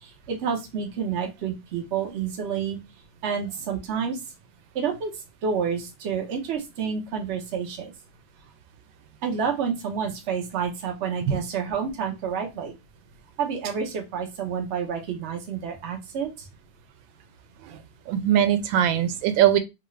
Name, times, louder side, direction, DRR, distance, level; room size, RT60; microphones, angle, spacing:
voice 1, 0.0-2.8 3.2-4.2 4.7-5.1 5.4-7.9 9.2-12.7 13.4-16.5, right 6 dB, 50° right, 0.8 m, -29 dB
voice 2, 18.1-19.6, right 11 dB, 90° right, 1.3 m, -21 dB
3.2 x 2.5 x 3.1 m
omnidirectional pair, 2.0 m